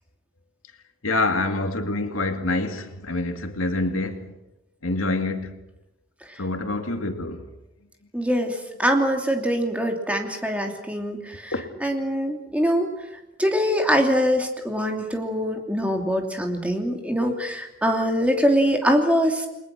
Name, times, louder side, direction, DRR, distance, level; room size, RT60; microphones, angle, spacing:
voice 1, 1.0-4.3 4.8-5.5 6.4-7.4 11.5-11.6, left 2 dB, 80° left, 2.4 m, -26 dB
voice 2, 8.1-11.5 11.8-12.9 13.4-19.5, equal, 5° right, 2.8 m, -23 dB
30.0 x 22.0 x 6.2 m
head